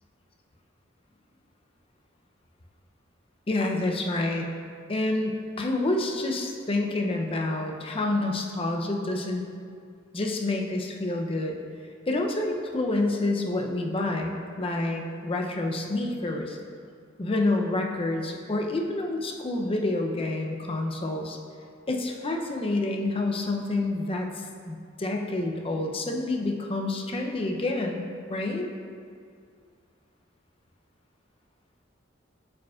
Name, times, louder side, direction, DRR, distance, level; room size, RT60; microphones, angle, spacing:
voice 1, 3.5-4.5 4.9-9.4 10.1-11.6 12.1-16.6 17.2-21.4 21.9-28.7, left 2 dB, 30° left, 2 dB, 0.5 m, -28 dB
8.5 x 5.0 x 2.4 m, 2.2 s
head